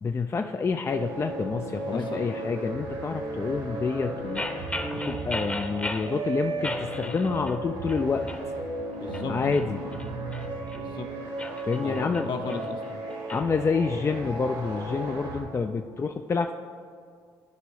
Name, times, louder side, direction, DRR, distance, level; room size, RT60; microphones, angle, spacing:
voice 1, 0.0-4.6 5.1-8.3 9.3-9.9 11.6-12.3 13.3-16.5, left 4 dB, 30° left, 6 dB, 0.4 m, -28 dB
sound 1, 0.9-15.4, right 2 dB, 80° right, 2.0 m, -35 dB
voice 2, 1.9-2.3 9.0-9.4 10.7-11.1 11.8-12.8, left 4 dB, 55° left, 4 dB, 1.0 m, -34 dB
sound 2, 4.3-6.1 6.6-7.6 7.9-8.5 8.9-10.8 11.3-13.4, left 2 dB, 15° left, 0.8 m, -36 dB
13.5 x 5.1 x 3.2 m, 2.2 s
supercardioid pair, 70°, 9 cm